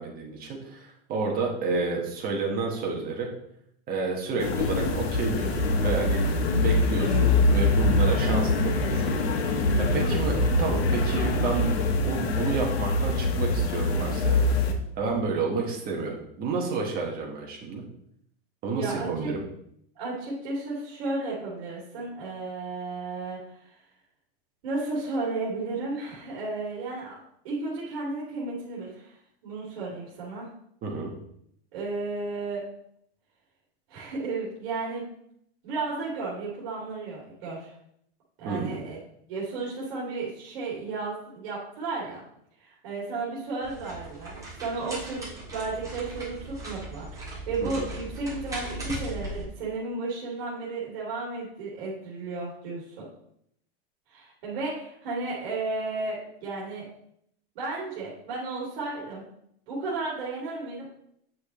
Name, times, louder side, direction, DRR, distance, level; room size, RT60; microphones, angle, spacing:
voice 1, 0.0-3.3 3.9-6.4 6.6-9.2 9.8-14.6 15.0-17.8 18.6-19.4 30.8-31.1 38.4-38.8 47.6-47.9, right 4 dB, 30° right, 0 dB, 1.6 m, -30 dB
sound 1, 4.4-14.7, left 2 dB, 90° left, 1.3 m, -24 dB
voice 2, 6.4-6.8 10.0-10.1 18.7-19.3 19.9-23.7 24.6-27.2 27.4-29.1 29.4-30.5 31.7-32.6 33.9-35.1 35.6-37.7 38.4-39.0 39.3-42.2 42.6-53.0 54.1-56.9 57.5-59.2 59.7-60.9, right 3 dB, 60° right, -6 dB, 2.9 m, -33 dB
sound 2, 43.6-49.4, right 1 dB, 10° right, 3.0 m, -38 dB
8.6 x 6.3 x 3.2 m, 0.72 s
supercardioid pair, 155°, 30 cm